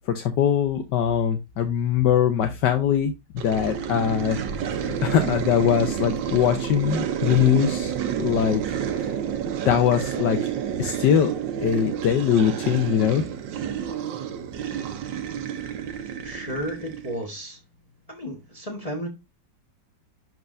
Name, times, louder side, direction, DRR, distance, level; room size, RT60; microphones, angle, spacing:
voice 1, 0.1-3.1 3.4-4.4 4.8-7.9 8.2-8.6 9.0-9.1 9.6-10.5 10.8-11.3 11.6-13.2, left 9 dB, 75° left, 1.4 m, -22 dB
sound 1, 3.4-17.2, right 8 dB, 85° right, 1.5 m, -29 dB
voice 2, 16.2-17.6 18.1-19.1, equal, 20° left, 1.3 m, -33 dB
11.0 x 4.6 x 2.6 m
omnidirectional pair, 1.9 m